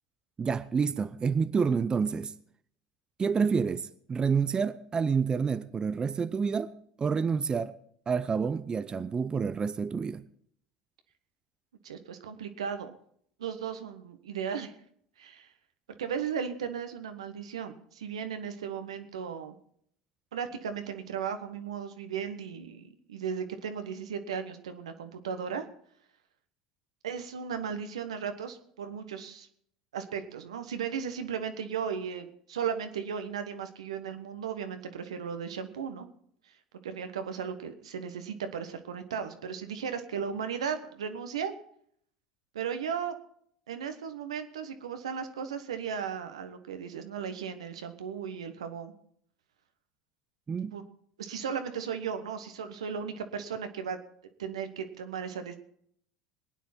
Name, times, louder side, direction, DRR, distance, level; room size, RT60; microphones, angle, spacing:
voice 1, 0.4-2.3 3.2-7.8 8.1-10.2 50.5-50.8, right 5 dB, 25° right, 0.6 m, -28 dB
voice 2, 11.8-12.9 13.4-14.7 15.2-15.5 16.0-19.5 20.3-25.7 27.0-29.5 29.9-36.1 36.8-41.5 42.5-43.2 43.7-48.9 50.7-50.8 51.2-54.0 54.4-55.6, right 7 dB, 85° right, 1.2 m, -36 dB
21.5 x 9.5 x 4.4 m
hypercardioid pair, 75°, 3 cm